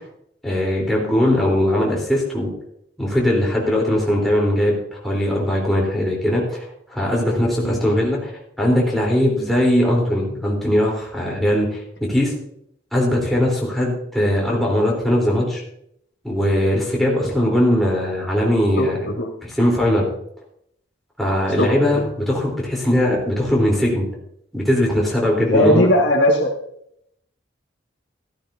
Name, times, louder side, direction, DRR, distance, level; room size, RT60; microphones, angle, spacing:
voice 1, 0.4-2.5 3.0-8.3 8.6-12.3 12.9-15.6 16.2-19.0 19.4-20.1 21.2-24.1 24.5-25.9, left 1 dB, ahead, -4 dB, 3.7 m, -20 dB
voice 2, 18.8-19.3 21.6-21.7 25.5-26.5, left 1 dB, 65° left, 0 dB, 1.9 m, -18 dB
13.5 x 13.5 x 2.7 m, 0.71 s
head